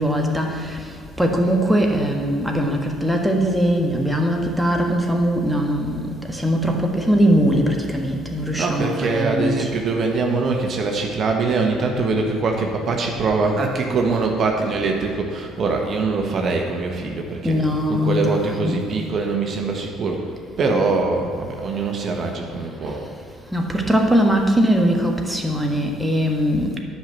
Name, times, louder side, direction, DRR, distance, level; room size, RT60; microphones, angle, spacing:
voice 1, 0.0-9.7 17.4-18.9 22.8-23.1 23.5-26.8, equal, 5° right, 1 dB, 1.6 m, -21 dB
voice 2, 8.5-17.6 17.9-20.3 20.6-23.1, right 3 dB, 50° right, 2 dB, 1.4 m, -23 dB
10.5 x 5.8 x 7.3 m, 2.4 s
hypercardioid pair, 55°, 0 cm